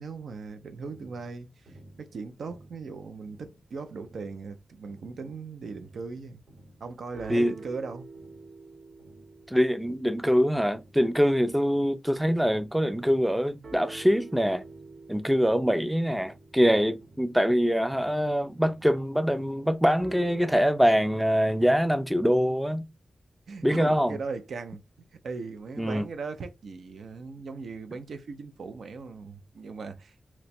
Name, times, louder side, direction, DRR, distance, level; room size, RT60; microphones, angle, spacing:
voice 1, 0.0-6.4 6.8-8.1 23.5-24.8 25.2-30.3, right 4 dB, 85° right, 0.5 m, -39 dB
sound 1, 0.9-3.7 4.0-12.6 13.0-20.6, right 3 dB, 60° right, 1.1 m, -49 dB
voice 2, 9.5-14.6 15.1-22.9 23.6-24.1 25.8-26.1, equal, 5° right, 0.3 m, -24 dB
2.9 x 2.2 x 4.1 m
wide cardioid pair, 130°, 0 cm